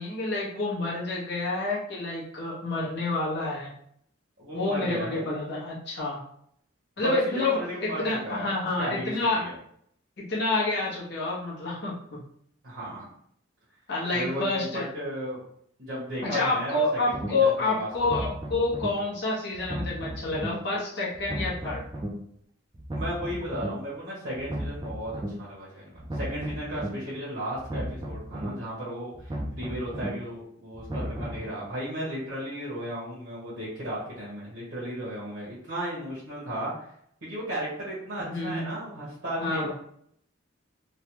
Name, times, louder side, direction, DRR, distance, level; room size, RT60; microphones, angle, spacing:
voice 1, 0.0-3.7 4.5-6.2 7.0-9.4 10.2-12.2 13.9-14.9 16.2-21.8 38.2-38.7 39.4-39.7, left 2 dB, 55° left, -5 dB, 1.0 m, -28 dB
voice 2, 4.4-5.3 7.0-8.5 8.8-9.5 12.6-13.1 14.1-15.4 15.8-18.2 22.9-36.9 37.2-39.7, right 1 dB, 60° right, -8 dB, 1.0 m, -35 dB
sound 1, 17.1-17.3 17.9-18.9 19.5-20.5 21.1-22.1 22.7-23.7 24.3-25.3 25.9-26.9 27.5-28.5 29.1-30.1 30.7-31.4, equal, 20° right, 0.4 m, -34 dB
3.2 x 2.1 x 2.9 m, 0.69 s
head